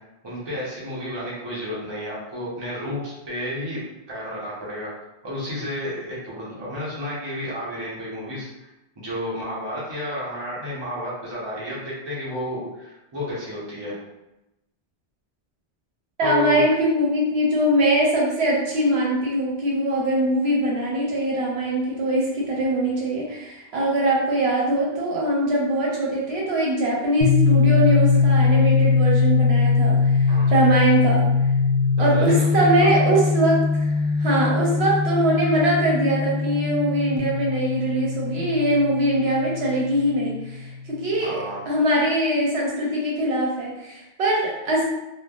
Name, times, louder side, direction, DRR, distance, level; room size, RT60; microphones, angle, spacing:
voice 1, 0.2-3.8 4.1-4.9 5.2-8.7 9.0-14.0 16.2-16.6 30.3-30.5 32.0-33.0 41.2-41.6, equal, 25° right, -7 dB, 0.7 m, -31 dB
voice 2, 16.2-30.2 30.5-31.3 32.0-41.4 41.7-44.9, right 1 dB, 75° right, -3 dB, 0.9 m, -22 dB
sound 1, 27.2-40.8, left 4 dB, 85° left, 0.9 m, -21 dB
3.2 x 2.1 x 2.4 m, 0.94 s
omnidirectional pair, 1.1 m